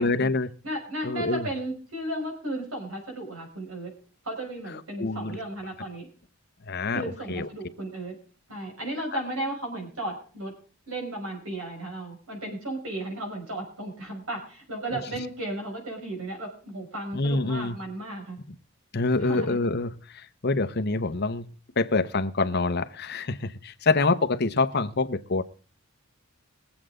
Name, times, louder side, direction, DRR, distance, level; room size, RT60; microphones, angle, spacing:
voice 1, 0.0-0.5 1.0-1.5 5.0-5.4 6.6-7.5 17.1-17.8 18.9-25.4, left 3 dB, 50° left, 10 dB, 0.9 m, -26 dB
voice 2, 0.6-3.9 4.2-6.1 6.9-8.1 8.5-10.5 10.9-18.4 19.2-19.6, right 1 dB, 80° right, 1 dB, 6.0 m, -34 dB
22.0 x 8.0 x 3.8 m, 0.39 s
head